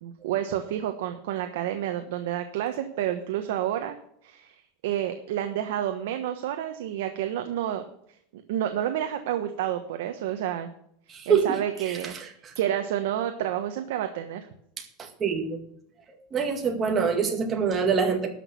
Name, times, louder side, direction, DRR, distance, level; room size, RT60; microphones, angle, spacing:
voice 1, 0.0-4.0 4.2-7.8 8.3-10.7 11.3-12.1 12.5-14.5, right 11 dB, 70° right, 6 dB, 1.2 m, -29 dB
voice 2, 11.1-11.6 11.9-12.5 14.8-15.6 16.1-18.3, right 6 dB, 20° right, 4 dB, 1.9 m, -26 dB
12.5 x 6.3 x 6.9 m, 0.71 s
supercardioid pair, 160°, 0 cm